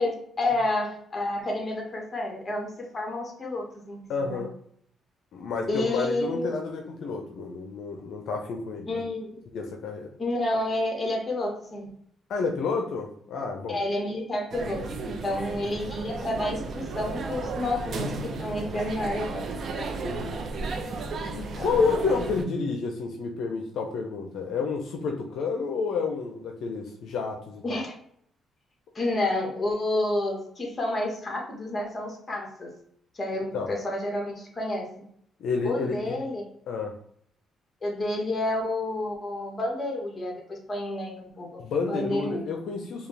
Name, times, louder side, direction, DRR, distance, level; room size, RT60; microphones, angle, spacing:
voice 1, 0.0-2.7 2.9-4.4 5.7-6.5 8.9-9.4 10.2-11.9 13.7-18.1 18.4-19.9 27.6-27.9 28.9-32.7 33.1-34.9 35.6-36.5 37.8-41.6 41.9-42.4, left 1 dB, 30° left, 0 dB, 1.5 m, -30 dB
voice 2, 4.1-4.5 5.3-9.1 9.5-10.1 12.3-13.8 20.0-20.4 21.2-27.8 33.5-33.7 35.4-36.2 36.7-37.0 41.6-43.1, left 4 dB, 75° left, 3 dB, 0.6 m, -30 dB
sound 1, 14.5-22.4, right 3 dB, 55° right, 0.6 m, -34 dB
4.8 x 2.3 x 3.3 m, 0.67 s
cardioid pair, 90°, 0 cm